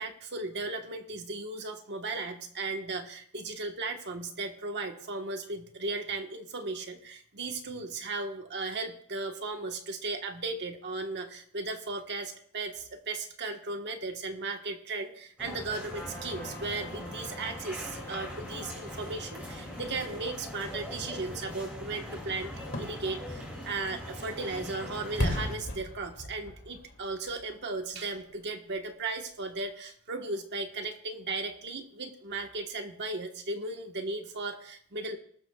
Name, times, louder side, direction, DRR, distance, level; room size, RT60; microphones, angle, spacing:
voice 1, 0.0-35.2, right 3 dB, 50° right, 4 dB, 1.3 m, -36 dB
sound 1, 15.4-25.5, left 1 dB, 5° right, 6.0 m, -41 dB
Trumpet, 15.8-20.4, left 1 dB, 15° left, 3.2 m, -47 dB
Fireworks, 22.6-28.4 28.8-28.9, left 1 dB, 60° left, 2.5 m, -37 dB
20.5 x 13.0 x 2.3 m, 0.63 s
head